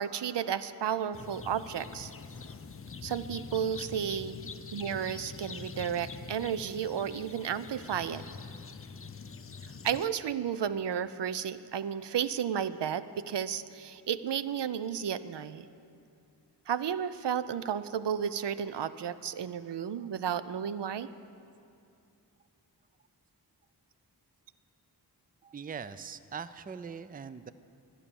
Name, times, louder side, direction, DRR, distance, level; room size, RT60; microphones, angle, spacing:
voice 1, 0.0-2.1 3.0-8.2 9.8-15.7 16.7-21.1, right 8 dB, 85° right, 14 dB, 0.5 m, -33 dB
sound 1, 1.1-10.1, left 5 dB, 35° left, 0.5 m, -44 dB
voice 2, 25.4-27.5, right 6 dB, 20° right, 14 dB, 0.4 m, -41 dB
13.5 x 10.0 x 7.0 m, 2.6 s
wide cardioid pair, 75°, 41 cm